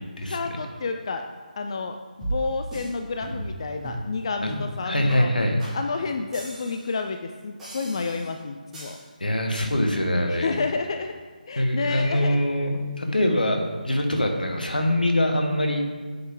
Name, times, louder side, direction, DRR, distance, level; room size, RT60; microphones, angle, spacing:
voice 1, 0.3-1.2 1.6-5.3 5.7-9.0 10.3-11.1 11.5-12.4, left 4 dB, 35° left, 6 dB, 0.3 m, -30 dB
sound 1, 2.2-2.9 3.2-3.6 3.8-4.1 4.5-4.7 5.1-5.2 5.6-5.8 6.3-7.0 7.6-8.3 8.7-9.0 9.5-9.6, right 1 dB, 5° right, 2.2 m, -35 dB
voice 2, 4.8-5.6 9.2-10.5 11.6-15.8, left 1 dB, 75° left, 3 dB, 1.2 m, -23 dB
7.7 x 5.3 x 3.6 m, 1.5 s
figure-of-eight pair, 150°, 5 cm